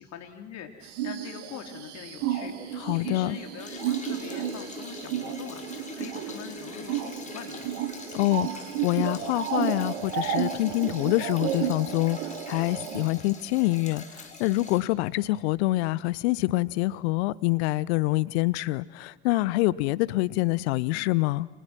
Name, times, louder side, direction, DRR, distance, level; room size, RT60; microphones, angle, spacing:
voice 1, 0.0-7.7, left 8 dB, 50° left, 3.6 m, -43 dB
sound 1, 0.8-13.1, right 10 dB, 65° right, 2.5 m, -33 dB
voice 2, 2.8-3.4 8.1-12.2 12.5-21.5, left 19 dB, 65° left, 0.8 m, -26 dB
sound 2, 3.6-14.8, left 3 dB, 20° left, 5.2 m, -43 dB
29.5 x 26.0 x 6.0 m
figure-of-eight pair, 70°, 36 cm